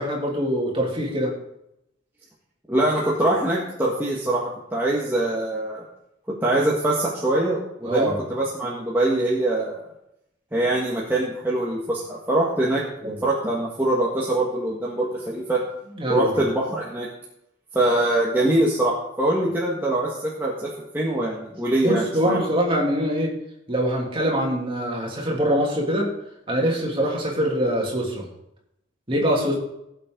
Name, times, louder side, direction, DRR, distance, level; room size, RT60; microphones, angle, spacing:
voice 1, 0.0-1.3 7.8-8.2 13.0-13.2 15.9-16.4 21.8-23.3 23.7-26.1 26.5-28.2 29.1-29.5, equal, 25° right, -2 dB, 3.1 m, -23 dB
voice 2, 2.7-5.8 6.4-9.8 10.5-15.6 16.1-17.1 17.7-22.4, right 1 dB, 10° right, -6 dB, 1.8 m, -23 dB
18.5 x 7.6 x 4.0 m, 0.82 s
head